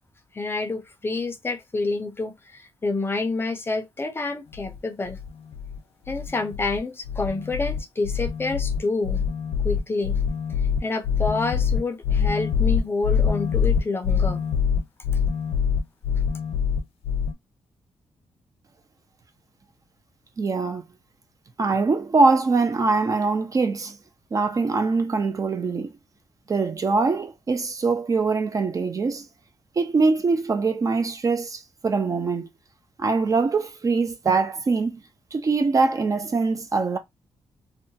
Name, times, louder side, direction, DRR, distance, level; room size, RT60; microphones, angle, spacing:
voice 1, 0.3-5.2 6.1-9.2 9.6-10.2 10.8-14.4, left 3 dB, 25° left, 0.5 m, -28 dB
sound 1, 4.5-4.8 5.1-5.8 6.1-6.8 7.0-17.3, left 7 dB, 85° left, 0.6 m, -25 dB
voice 2, 20.4-20.8 21.6-24.0 24.3-25.9 26.5-29.3 29.8-32.5 33.0-35.0 35.3-37.0, right 4 dB, 35° right, 0.4 m, -23 dB
2.7 x 2.1 x 2.7 m
cardioid pair, 110°, 10 cm